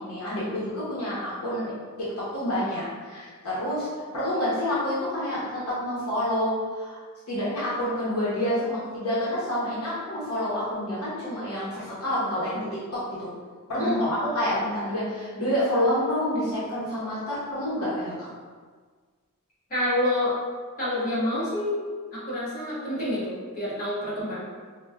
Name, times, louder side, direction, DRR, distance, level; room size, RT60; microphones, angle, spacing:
voice 1, 0.0-3.9 4.1-7.0 7.3-12.7 12.9-13.3 13.7-18.3, left 1 dB, 80° left, -9 dB, 1.0 m, -28 dB
voice 2, 19.7-20.4 20.8-21.8 22.1-24.4, left 1 dB, 35° left, -12 dB, 1.4 m, -27 dB
4.3 x 2.3 x 2.3 m, 1.5 s
head